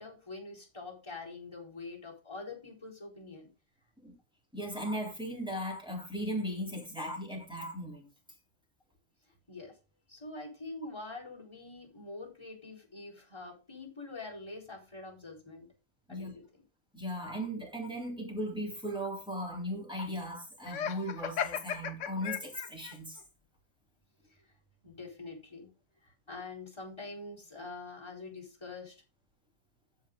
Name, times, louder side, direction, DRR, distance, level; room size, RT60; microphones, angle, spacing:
voice 1, 0.0-3.5 9.5-9.7 10.1-15.7 16.1-16.4 24.3-24.5 24.8-25.7 26.0-29.0, left 3 dB, 20° left, 4.4 m, -45 dB
voice 2, 4.5-8.1 16.1-16.3 16.9-23.2, equal, 5° right, 3.7 m, -37 dB
Laughter, 20.6-23.0, left 8 dB, 70° left, 1.1 m, -36 dB
15.0 x 5.6 x 3.8 m
omnidirectional pair, 1.3 m